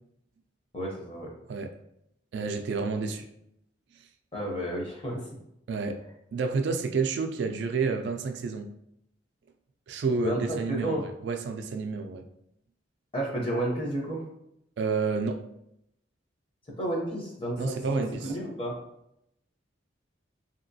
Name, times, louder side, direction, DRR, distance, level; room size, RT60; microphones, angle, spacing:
voice 1, 0.7-1.3 4.3-5.3 10.0-11.0 13.1-14.2 16.8-18.7, right 1 dB, 30° left, -2 dB, 0.8 m, -32 dB
voice 2, 2.3-3.2 5.7-6.0 6.3-8.7 9.9-12.2 14.8-15.4 17.6-18.3, right 4 dB, 60° right, 6 dB, 0.3 m, -29 dB
2.9 x 2.8 x 2.7 m, 0.79 s
head